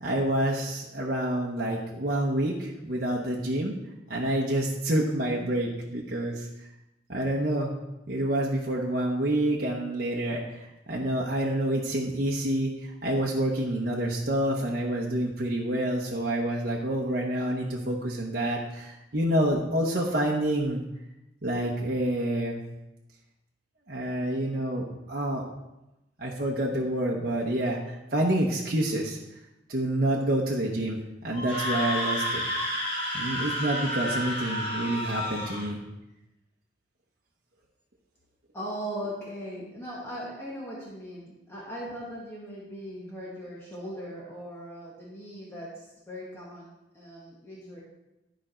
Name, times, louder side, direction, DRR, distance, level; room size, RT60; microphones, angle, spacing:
voice 1, 0.0-3.8 4.1-6.7 7.1-7.7 8.1-20.8 21.4-22.6 23.9-25.4 26.2-29.2 29.7-32.4 33.1-35.8, right 1 dB, 55° right, -3 dB, 1.0 m, -28 dB
Screaming, 31.3-35.7, equal, 30° left, 2.1 m, -30 dB
voice 2, 38.5-47.8, equal, 15° left, -7 dB, 1.7 m, -39 dB
12.0 x 5.1 x 4.4 m, 0.96 s
head